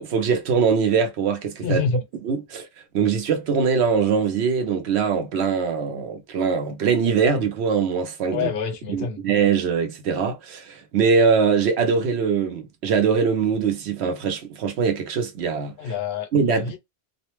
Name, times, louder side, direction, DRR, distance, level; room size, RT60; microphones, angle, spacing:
voice 1, 0.0-1.8 2.3-2.7 2.9-8.5 8.9-15.7 16.3-16.8, right 6 dB, 70° right, 0.9 m, -22 dB
voice 2, 1.6-2.0 8.3-9.2 15.8-16.8, left 5 dB, 65° left, 0.8 m, -27 dB
2.4 x 2.0 x 3.0 m
omnidirectional pair, 1.2 m